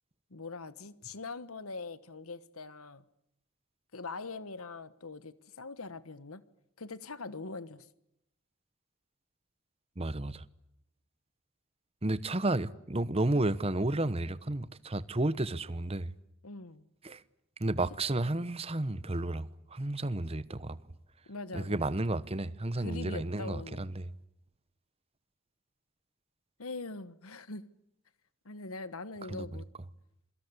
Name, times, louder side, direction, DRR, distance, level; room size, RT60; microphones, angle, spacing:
voice 1, 0.3-3.0 3.9-6.4 6.8-7.9 16.4-16.9 21.3-21.8 22.8-24.0 26.6-27.7 28.4-29.7, left 3 dB, 75° left, 1.4 m, -42 dB
voice 2, 10.0-10.4 12.0-16.1 17.0-17.2 17.6-20.8 21.5-24.0 29.3-29.4, right 2 dB, 25° right, 1.0 m, -32 dB
27.5 x 23.5 x 8.3 m
head